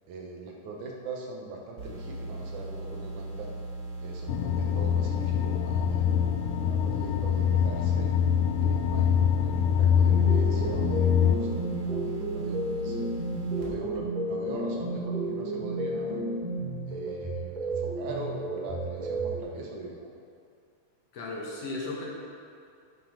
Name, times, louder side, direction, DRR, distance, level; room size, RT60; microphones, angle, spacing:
voice 1, 0.1-3.5 4.0-8.1 8.6-13.1 13.5-16.2 16.9-20.1, right 2 dB, 70° right, 0 dB, 2.4 m, -41 dB
sound 1, 1.8-13.6, right 2 dB, 45° right, 2.5 m, -38 dB
sound 2, 4.3-11.4, left 8 dB, 90° left, 2.2 m, -24 dB
sound 3, 10.1-19.4, right 2 dB, 20° right, 1.1 m, -32 dB
voice 2, 21.1-22.1, left 2 dB, 60° left, -3 dB, 2.1 m, -35 dB
9.6 x 7.6 x 5.1 m, 2.4 s
omnidirectional pair, 3.7 m